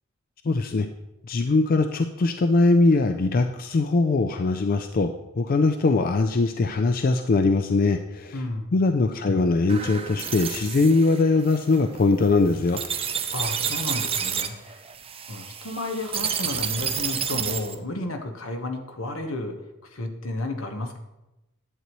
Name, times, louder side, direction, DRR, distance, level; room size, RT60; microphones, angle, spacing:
voice 1, 0.4-0.9 1.3-8.4 8.7-12.8, left 3 dB, 45° left, 8 dB, 0.4 m, -21 dB
voice 2, 8.3-8.7 13.3-14.8 15.3-19.6 19.8-21.0, left 2 dB, 80° left, 5 dB, 1.1 m, -32 dB
sound 1, 9.7-17.8, right 7 dB, 25° right, 0.6 m, -30 dB
11.0 x 8.0 x 3.0 m, 0.97 s
head